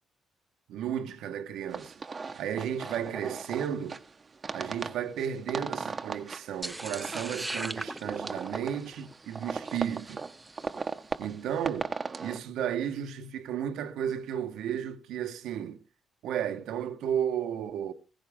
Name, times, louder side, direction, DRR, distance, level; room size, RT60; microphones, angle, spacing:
voice 1, 0.7-1.9 2.4-4.0 4.5-10.2 11.2-11.9 12.2-15.8 16.2-17.9, right 9 dB, 85° right, 1.2 m, -33 dB
sound 1, 1.7-12.4, right 4 dB, 35° right, 1.0 m, -38 dB
sound 2, 6.6-10.9, right 2 dB, 10° right, 0.7 m, -40 dB
16.0 x 15.5 x 3.6 m
cardioid pair, 90°, 0 cm